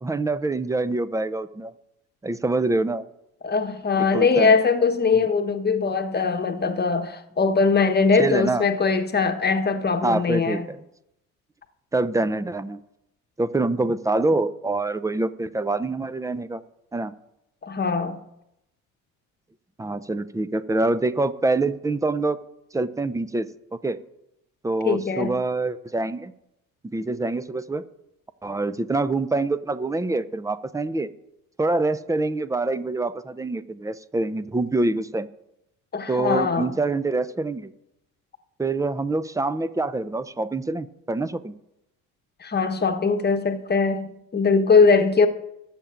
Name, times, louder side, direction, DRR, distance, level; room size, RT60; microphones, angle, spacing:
voice 1, 0.0-1.7 2.2-3.1 4.0-4.6 5.2-5.3 8.2-8.7 10.0-10.8 11.9-12.8 13.4-16.6 16.9-17.1 19.8-22.4 22.7-24.0 24.6-26.3 26.8-27.8 28.4-31.1 31.6-35.3 36.1-37.7 38.6-41.5, right 2 dB, 10° right, 0.5 m, -25 dB
voice 2, 3.4-10.6 17.6-18.2 24.8-25.3 35.9-36.7 42.4-45.3, left 4 dB, 25° left, 1.1 m, -21 dB
19.5 x 8.7 x 2.5 m
figure-of-eight pair, 50°, 41 cm